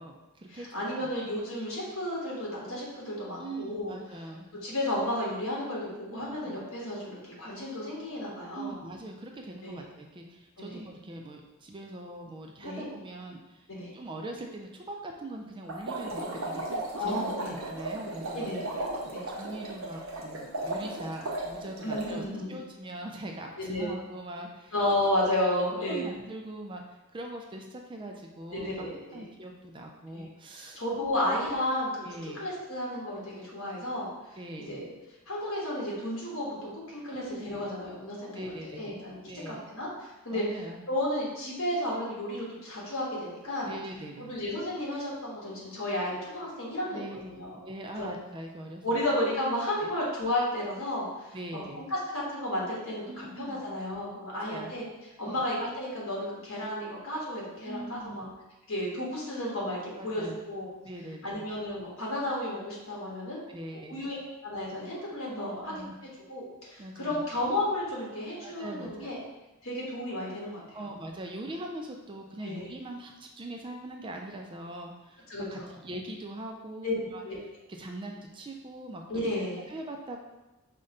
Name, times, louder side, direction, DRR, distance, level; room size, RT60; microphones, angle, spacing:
voice 1, 0.0-1.1 3.4-4.5 6.1-6.6 8.5-13.7 13.9-16.6 17.0-18.5 19.3-22.2 22.5-24.7 25.9-30.8 32.0-32.4 34.4-34.9 37.1-37.6 38.3-39.0 39.3-39.6 40.3-40.8 43.6-44.3 46.9-49.3 49.8-49.9 51.3-51.9 53.1-53.6 54.3-54.7 55.3-55.4 57.7-58.4 60.0-60.4 60.8-61.5 63.5-64.1 65.3-65.9 66.8-67.3 68.4-69.1 70.7-77.3 77.7-79.3 79.7-80.2, right 1 dB, 25° right, 2 dB, 0.4 m, -42 dB
voice 2, 0.5-4.0 4.6-8.8 9.6-9.8 10.6-10.9 12.6-12.8 13.7-13.9 17.0-17.5 18.3-18.8 19.1-19.2 21.8-22.5 23.6-23.9 24.7-26.1 28.5-29.3 30.1-30.3 30.6-32.0 32.3-34.1 34.7-34.9 35.3-39.2 39.5-40.4 40.9-43.7 44.3-47.6 48.0-48.1 48.8-54.8 55.2-58.3 58.7-60.7 61.2-63.4 63.9-64.2 64.4-65.7 66.3-69.2 69.6-70.6 72.4-72.7 75.3-75.7 76.8-76.9 77.2-77.4 79.1-79.6, left 1 dB, 70° left, -5 dB, 1.4 m, -32 dB
sound 1, 15.7-22.2, right 2 dB, 65° right, 0.7 m, -35 dB
5.2 x 2.2 x 3.7 m, 1.1 s
head